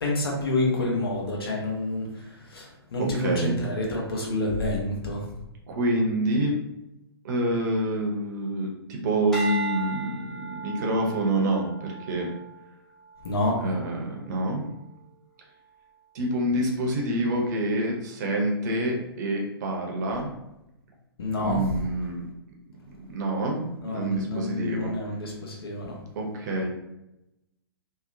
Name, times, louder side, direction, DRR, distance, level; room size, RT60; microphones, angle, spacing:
voice 1, 0.0-5.3 13.2-13.6 21.2-21.7 23.8-26.0, left 2 dB, 65° left, -1 dB, 0.8 m, -28 dB
voice 2, 3.0-3.5 5.7-6.6 7.2-12.3 13.6-14.6 16.1-20.3 21.4-22.2 23.1-24.9 26.2-26.7, right 1 dB, 45° right, 0 dB, 0.6 m, -27 dB
sound 1, 9.3-13.8 14.3-14.7, right 5 dB, 5° left, 0.5 m, -36 dB
2.8 x 2.0 x 2.6 m, 0.87 s
figure-of-eight pair, 115°, 14 cm